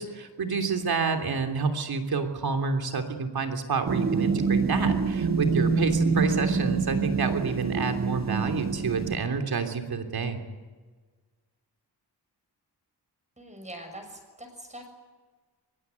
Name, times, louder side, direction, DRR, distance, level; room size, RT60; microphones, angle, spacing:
voice 1, 0.0-10.4, right 5 dB, 60° right, 6 dB, 3.3 m, -29 dB
sound 1, 3.9-9.2, right 4 dB, 40° right, 1.5 m, -26 dB
voice 2, 13.4-14.9, right 1 dB, 15° right, 4 dB, 6.6 m, -43 dB
24.5 x 22.0 x 9.6 m, 1.4 s
wide cardioid pair, 155°, 42 cm